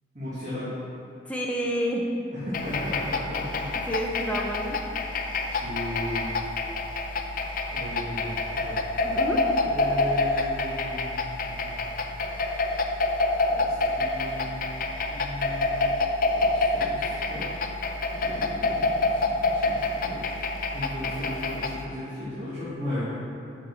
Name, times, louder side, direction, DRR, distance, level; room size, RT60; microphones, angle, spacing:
voice 1, 0.1-0.7 2.3-3.9 5.5-6.4 7.7-8.8 9.6-11.8 13.5-14.6 15.0-15.9 16.2-17.4 18.1-23.0, left 1 dB, 40° right, -11 dB, 1.8 m, -36 dB
voice 2, 1.3-2.1 3.9-4.8 9.0-9.4, equal, 5° left, -2 dB, 0.7 m, -29 dB
sound 1, 2.5-21.8, left 2 dB, 45° left, 0.5 m, -27 dB
6.5 x 6.0 x 5.9 m, 2.5 s
head